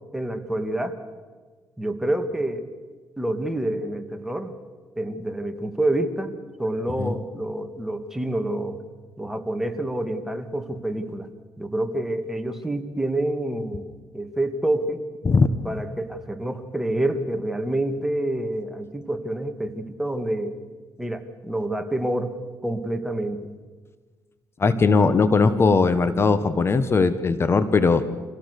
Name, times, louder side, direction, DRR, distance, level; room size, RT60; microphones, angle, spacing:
voice 1, 0.1-1.0 1.8-2.6 3.2-4.5 5.0-6.3 6.6-8.8 9.2-11.3 11.6-13.9 14.1-15.1 15.7-20.5 21.0-23.5, right 1 dB, 5° right, 6 dB, 2.0 m, -27 dB
voice 2, 24.6-28.0, left 4 dB, 40° left, 12 dB, 1.2 m, -19 dB
25.5 x 17.0 x 6.7 m, 1.4 s
cardioid pair, 85°, 7 cm